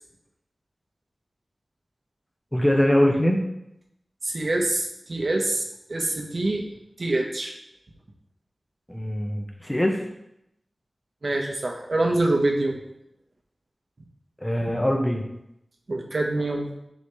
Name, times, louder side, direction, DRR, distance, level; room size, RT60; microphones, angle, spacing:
voice 1, 2.5-3.4 8.9-10.0 14.4-15.2, equal, 10° left, 1 dB, 1.2 m, -22 dB
voice 2, 4.2-6.7 7.0-7.5 11.2-12.8 15.9-16.7, right 2 dB, 60° right, 1 dB, 1.2 m, -25 dB
10.5 x 4.1 x 3.3 m, 0.82 s
wide cardioid pair, 75°, 0 cm